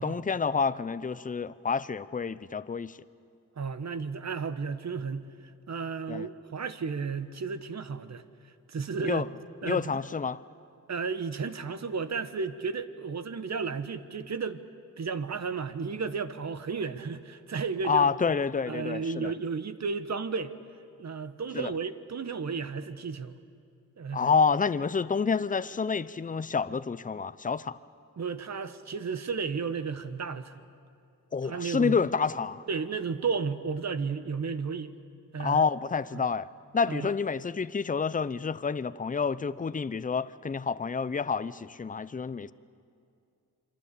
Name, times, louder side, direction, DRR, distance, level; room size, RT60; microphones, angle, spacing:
voice 1, 0.0-3.0 6.1-6.3 9.1-9.3 9.6-10.4 17.8-19.3 21.5-21.7 24.1-27.8 31.3-32.6 35.4-36.5 36.7-42.5, left 5 dB, 25° left, 0.6 m, -28 dB
voice 2, 3.6-5.3 5.7-8.2 8.7-9.3 9.6-10.0 10.9-14.6 15.0-18.1 18.7-20.5 21.0-23.4 24.0-24.3 28.2-30.6 31.4-32.0 32.7-34.9 35.3-35.6 36.1-36.3 36.9-37.1, right 5 dB, 55° right, 1.2 m, -33 dB
28.0 x 23.0 x 8.4 m
wide cardioid pair, 100°, 33 cm